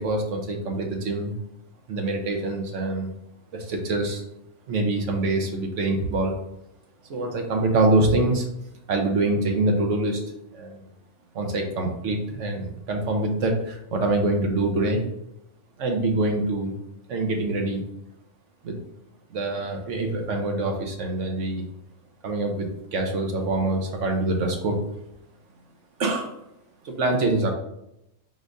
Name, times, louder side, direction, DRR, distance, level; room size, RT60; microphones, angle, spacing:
voice 1, 0.0-1.3 1.9-3.1 3.5-4.2 4.7-6.3 7.1-8.4 8.9-10.2 10.5-10.8 11.3-15.0 15.8-16.7 17.1-17.8 18.6-18.8 19.3-21.6 22.2-24.7 26.0-26.3 26.8-27.5, right 2 dB, 70° right, 3 dB, 1.2 m, -25 dB
4.2 x 2.6 x 4.8 m, 0.83 s
omnidirectional pair, 1.4 m